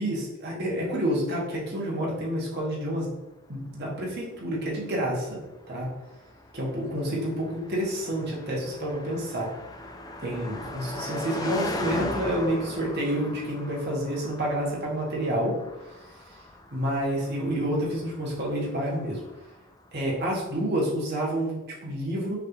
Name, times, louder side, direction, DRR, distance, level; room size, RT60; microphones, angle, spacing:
voice 1, 0.0-3.1 3.5-5.4 5.7-5.9 6.5-9.5 10.2-15.6 16.7-19.2 19.9-22.4, right 1 dB, 55° right, -4 dB, 1.3 m, -29 dB
Car passing by, 3.5-19.9, left 1 dB, 20° left, 0.4 m, -39 dB
5.7 x 2.5 x 3.1 m, 1.1 s
head